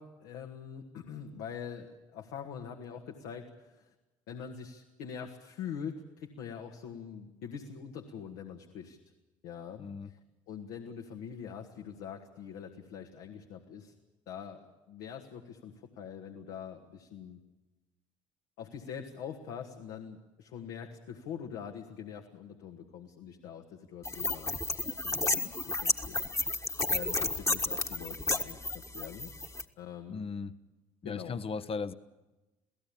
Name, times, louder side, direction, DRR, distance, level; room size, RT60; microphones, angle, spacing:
voice 1, 0.0-3.9 4.3-9.0 9.4-10.2 10.5-13.9 14.3-17.4 18.6-24.5 24.8-25.4 25.7-26.2 26.4-29.3 29.8-30.2 31.0-31.4, left 7 dB, 70° left, 3 dB, 1.7 m, -44 dB
voice 2, 9.8-10.1 30.1-30.5 31.0-31.9, left 5 dB, 35° left, 13 dB, 1.0 m, -37 dB
sound 1, 24.1-29.6, left 2 dB, 20° left, 1.5 m, -32 dB
27.5 x 17.0 x 8.6 m, 1.1 s
hypercardioid pair, 55°, 17 cm